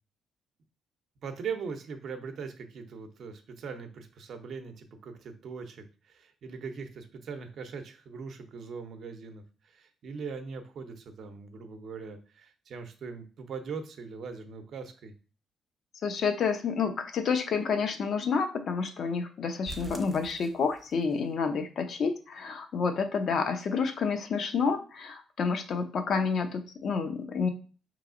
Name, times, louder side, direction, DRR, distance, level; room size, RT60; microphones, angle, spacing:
voice 1, 1.2-15.1, right 5 dB, 65° right, 7 dB, 0.7 m, -41 dB
voice 2, 16.0-27.5, left 5 dB, 60° left, 6 dB, 0.6 m, -29 dB
sound 1, 19.7-21.2 21.5-21.6 22.0-22.1 22.5-22.6, right 2 dB, 20° right, 0.7 m, -45 dB
4.7 x 3.1 x 2.5 m, 0.37 s
cardioid pair, 90°, 0 cm